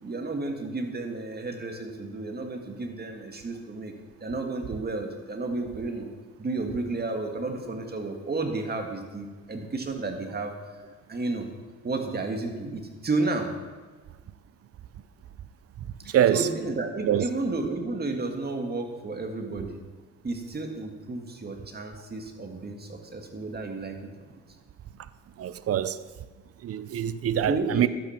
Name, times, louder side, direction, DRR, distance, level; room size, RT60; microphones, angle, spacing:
voice 1, 0.0-3.9 4.2-6.1 6.4-10.5 11.1-11.5 11.8-13.5 16.0-19.8 20.2-24.4 27.5-27.9, right 3 dB, 30° right, 2.0 m, -32 dB
voice 2, 16.1-16.5 17.0-17.2 25.4-26.0 26.6-27.9, right 10 dB, 50° right, 0.7 m, -24 dB
12.0 x 9.2 x 5.9 m
cardioid pair, 90°, 30 cm